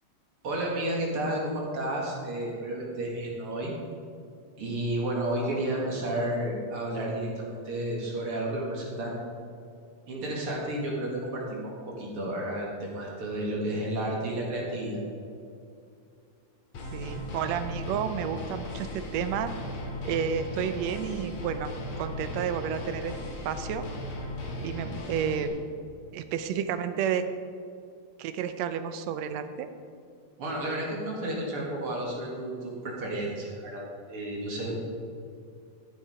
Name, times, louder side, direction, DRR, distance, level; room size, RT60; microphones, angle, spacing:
voice 1, 0.4-3.7 4.6-9.2 10.1-15.0 30.4-34.7, right 1 dB, 50° right, -2 dB, 2.7 m, -32 dB
sound 1, 16.7-25.5, left 1 dB, 70° left, 2.9 m, -37 dB
voice 2, 16.9-19.5 20.0-21.7 22.0-23.1 23.5-23.8 24.6-25.6 26.1-27.3 28.2-29.7, right 8 dB, 75° right, 10 dB, 1.8 m, -31 dB
14.0 x 7.2 x 4.9 m, 2.4 s
omnidirectional pair, 3.3 m